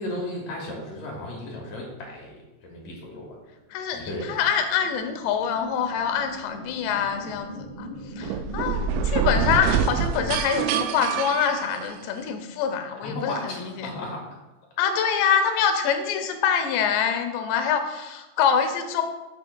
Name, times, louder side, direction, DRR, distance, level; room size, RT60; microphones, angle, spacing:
voice 1, 0.0-3.4 3.9-4.4 13.0-14.4, left 1 dB, 60° left, -1 dB, 2.5 m, -35 dB
sound 1, 3.4-13.1, right 1 dB, 50° right, 4.3 m, -42 dB
voice 2, 3.7-13.9 14.8-19.0, left 7 dB, 80° left, 6 dB, 2.9 m, -25 dB
sound 2, 8.2-12.2, right 7 dB, 85° right, 2.9 m, -26 dB
13.0 x 7.0 x 2.3 m, 1.0 s
omnidirectional pair, 5.2 m